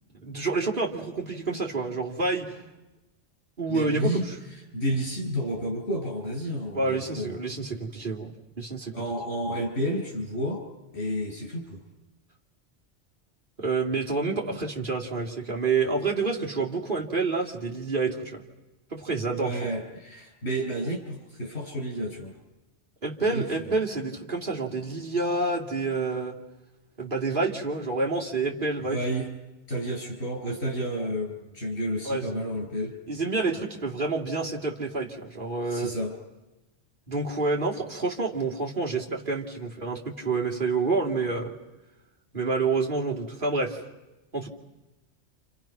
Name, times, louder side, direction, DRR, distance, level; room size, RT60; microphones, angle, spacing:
voice 1, 0.2-2.6 3.6-4.2 6.7-8.3 8.6-8.9 13.6-18.4 18.9-19.6 23.0-26.4 27.0-29.0 32.0-32.4 33.1-35.9 37.1-41.5 42.3-43.8 44.3-44.5, right 3 dB, 50° right, -2 dB, 3.0 m, -28 dB
voice 2, 3.7-4.3 4.7-7.4 8.9-10.6 10.9-11.8 19.3-22.3 23.2-23.7 28.9-29.3 29.7-32.9 35.7-36.1, equal, 65° left, 1 dB, 8.2 m, -31 dB
29.5 x 29.0 x 6.0 m, 1.0 s
omnidirectional pair, 1.1 m